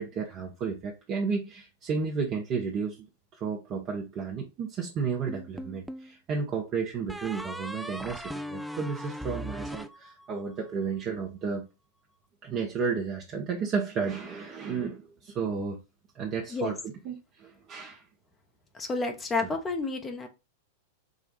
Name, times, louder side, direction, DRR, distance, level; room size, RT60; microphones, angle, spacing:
voice 1, 0.0-3.1 3.3-11.7 12.4-15.8 16.1-18.0 19.4-19.5, right 5 dB, 35° right, 0.8 m, -32 dB
sound 1, 5.3-6.1 7.1-10.6, equal, 5° right, 0.4 m, -39 dB
voice 2, 18.7-20.3, left 3 dB, 20° left, 0.8 m, -30 dB
5.0 x 2.3 x 3.9 m
figure-of-eight pair, 95°, 0 cm